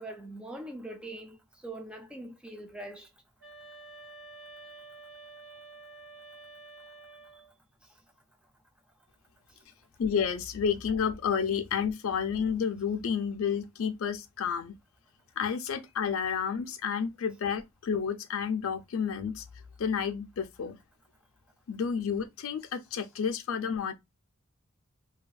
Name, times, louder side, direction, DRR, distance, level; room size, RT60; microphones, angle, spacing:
voice 1, 0.0-1.4 1.6-3.1 7.3-7.4, right 1 dB, 5° right, 0.3 m, -42 dB
sound 1, 3.4-7.5, right 3 dB, 85° right, 1.1 m, -49 dB
voice 2, 10.0-14.8 15.4-19.4 19.8-20.8 21.7-23.9, left 7 dB, 70° left, 0.4 m, -30 dB
2.7 x 2.4 x 2.3 m
head